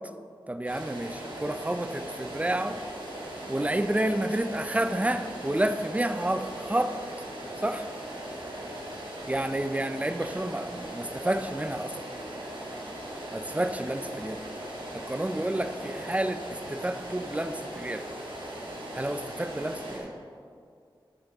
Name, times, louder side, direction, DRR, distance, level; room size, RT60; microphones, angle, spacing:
voice 1, 0.5-2.8 3.5-7.0 7.6-7.9 9.3-12.0 13.3-14.4 14.9-16.4 16.7-18.1 18.9-20.1, right 1 dB, 15° right, 10 dB, 0.5 m, -30 dB
sound 1, 0.7-20.0, right 1 dB, 75° right, 2.6 m, -39 dB
12.0 x 9.4 x 3.6 m, 2.3 s
wide cardioid pair, 85°, 9 cm